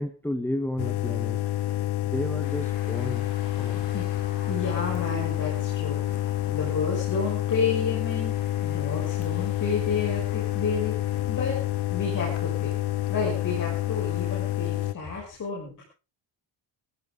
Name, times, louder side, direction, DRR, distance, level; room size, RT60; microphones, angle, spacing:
voice 1, 0.0-1.4 2.0-3.2 3.6-3.9, left 1 dB, 5° left, 7 dB, 1.1 m, -32 dB
sound 1, 0.8-14.9, left 14 dB, 55° left, 0.9 m, -28 dB
sound 2, 2.4-14.5, left 7 dB, 70° left, 5.5 m, -46 dB
voice 2, 3.9-4.2 4.5-8.3 8.6-11.6 11.9-12.7 13.1-15.8, left 5 dB, 40° left, -4 dB, 6.6 m, -31 dB
19.0 x 15.5 x 3.8 m, 0.32 s
cardioid pair, 155°, 47 cm